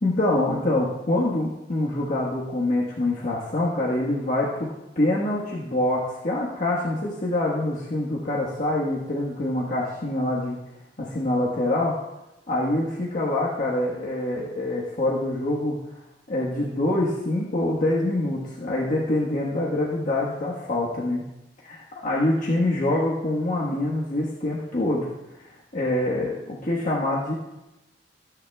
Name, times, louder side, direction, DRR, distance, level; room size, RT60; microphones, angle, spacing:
voice 1, 0.0-4.7 4.9-10.6 11.0-12.0 12.5-15.8 16.3-21.2 21.6-25.1 25.4-27.3, left 1 dB, 50° left, -5 dB, 1.5 m, -25 dB
16.0 x 9.5 x 2.4 m, 0.96 s
head